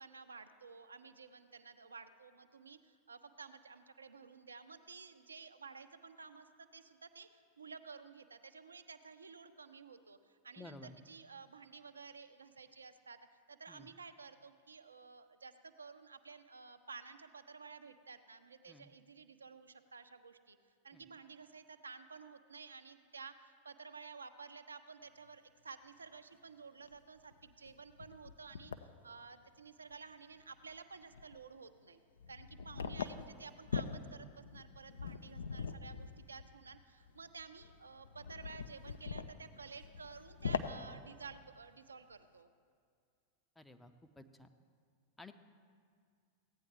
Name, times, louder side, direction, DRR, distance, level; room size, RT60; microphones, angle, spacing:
voice 1, 0.0-20.6 20.8-32.0 32.3-42.5, right 5 dB, 75° right, 9 dB, 0.5 m, -53 dB
voice 2, 10.6-11.0 13.7-13.9 18.7-18.9 20.9-21.0 43.6-44.5 45.2-45.3, left 2 dB, 5° left, 7 dB, 0.5 m, -54 dB
sound 1, 26.3-26.4 26.9-27.0 27.3-28.9 29.9-30.0 30.4-30.7 31.0-31.4 32.2-41.6, left 5 dB, 70° left, 0.4 m, -43 dB
15.5 x 9.1 x 3.2 m, 2.1 s
figure-of-eight pair, 90°, 0 cm